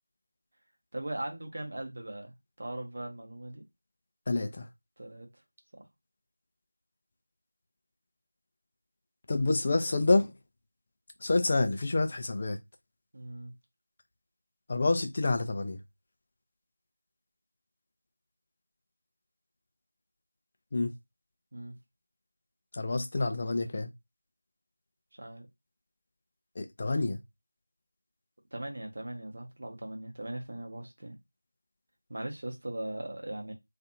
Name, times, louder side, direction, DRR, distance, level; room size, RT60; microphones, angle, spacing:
voice 1, 0.9-3.6 5.0-5.3 5.7-5.8 13.1-13.5 21.5-21.7 25.2-25.5 28.5-31.2 32.1-33.5, right 1 dB, 40° right, 0.8 m, -39 dB
voice 2, 4.3-4.7 9.3-10.3 11.2-12.6 14.7-15.8 20.7-20.9 22.7-23.9 26.6-27.2, left 3 dB, 20° left, 0.3 m, -28 dB
2.4 x 2.4 x 2.7 m
figure-of-eight pair, 175°, 0 cm